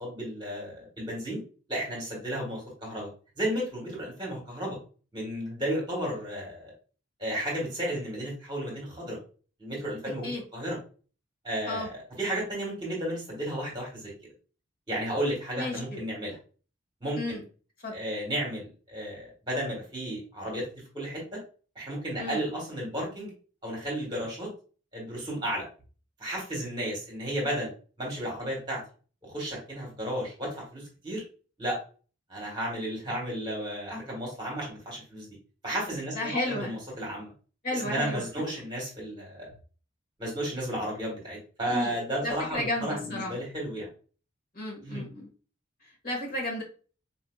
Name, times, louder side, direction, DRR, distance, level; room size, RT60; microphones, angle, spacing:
voice 1, 0.0-1.4 1.7-3.1 3.4-4.8 5.1-6.7 7.2-9.2 9.6-10.8 11.4-14.3 14.9-16.4 17.0-17.4 17.9-20.7 20.9-21.4 21.7-23.3 23.6-24.5 24.9-25.6 26.2-27.7 28.0-28.8 29.2-31.2 31.6-31.8 32.3-35.3 35.6-37.3 37.7-39.5 40.2-43.9 44.8-45.0, right 1 dB, 25° right, -3 dB, 1.4 m, -33 dB
voice 2, 15.6-16.0 17.2-17.4 17.8-18.0 22.2-22.4 36.1-36.8 37.6-38.2 41.7-41.9 42.2-43.3 44.5-45.3 45.8-46.6, left 1 dB, 45° left, -1 dB, 1.4 m, -33 dB
4.3 x 2.8 x 2.3 m, 0.38 s
head